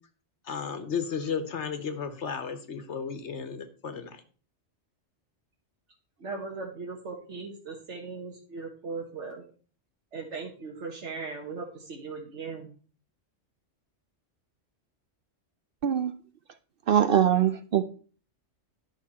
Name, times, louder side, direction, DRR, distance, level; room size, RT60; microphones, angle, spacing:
voice 1, 0.5-4.2, left 6 dB, 85° left, 9 dB, 1.5 m, -34 dB
voice 2, 6.2-9.5 10.1-12.7, right 4 dB, 90° right, -1 dB, 1.6 m, -38 dB
voice 3, 16.9-17.8, right 9 dB, 60° right, 10 dB, 0.7 m, -22 dB
11.0 x 6.0 x 4.2 m, 0.41 s
omnidirectional pair, 1.2 m